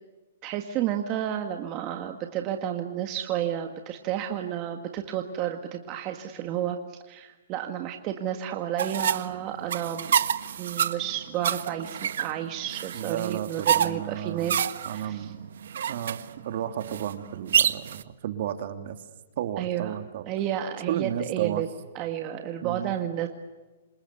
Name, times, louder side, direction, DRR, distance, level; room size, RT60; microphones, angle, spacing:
voice 1, 0.4-10.1 10.6-15.3 19.6-19.9 20.2-21.7 21.9-23.3, right 10 dB, 30° right, 5 dB, 1.8 m, -31 dB
sound 1, 8.8-18.0, right 9 dB, 70° right, 1.4 m, -28 dB
voice 2, 12.9-15.5 15.9-19.0 19.4-20.3 20.9-21.6 22.6-23.0, right 10 dB, 55° right, 8 dB, 2.8 m, -33 dB
28.0 x 26.0 x 8.2 m, 1.2 s
hypercardioid pair, 160°, 0 cm